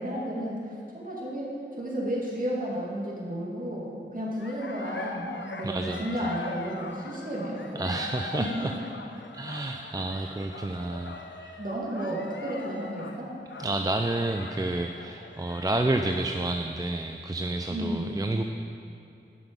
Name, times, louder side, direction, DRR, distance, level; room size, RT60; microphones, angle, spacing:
voice 1, 0.0-8.0 8.4-8.8 10.2-10.3 11.6-13.3 17.7-18.2, equal, 45° right, -4 dB, 2.3 m, -33 dB
sound 1, 4.4-16.2, left 3 dB, 70° left, 0.7 m, -42 dB
voice 2, 5.6-6.0 7.7-8.7 9.3-11.6 13.6-18.4, right 2 dB, 20° right, 4 dB, 0.4 m, -30 dB
11.5 x 6.0 x 5.2 m, 2.5 s
wide cardioid pair, 55°, 20 cm